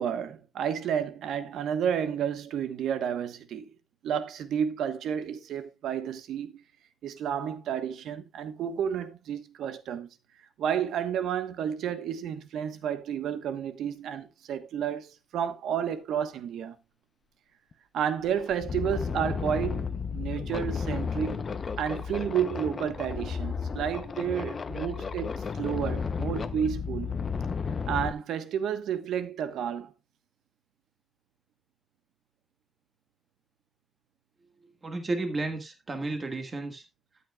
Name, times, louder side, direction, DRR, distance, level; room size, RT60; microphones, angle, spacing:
voice 1, 0.0-3.7 4.0-6.6 7.0-10.1 10.6-16.7 17.9-21.4 21.8-27.1 27.9-29.9, right 8 dB, 85° right, 1.1 m, -31 dB
sound 1, 17.7-17.8 18.2-28.1, left 5 dB, 30° left, 0.7 m, -33 dB
voice 2, 34.8-36.8, right 2 dB, 25° right, 1.6 m, -32 dB
13.5 x 8.5 x 2.3 m
wide cardioid pair, 180°, 0 cm